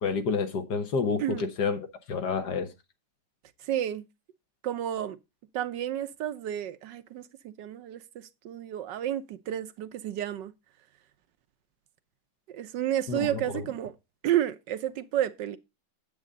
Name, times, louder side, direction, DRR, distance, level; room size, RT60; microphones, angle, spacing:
voice 1, 0.0-1.8 2.1-2.7 13.1-13.6, left 5 dB, 70° left, 1.8 m, -29 dB
voice 2, 3.6-4.1 4.6-5.2 5.5-10.5 12.5-13.9 14.2-15.6, right 11 dB, 80° right, 1.4 m, -31 dB
8.9 x 8.2 x 3.9 m
omnidirectional pair, 1.9 m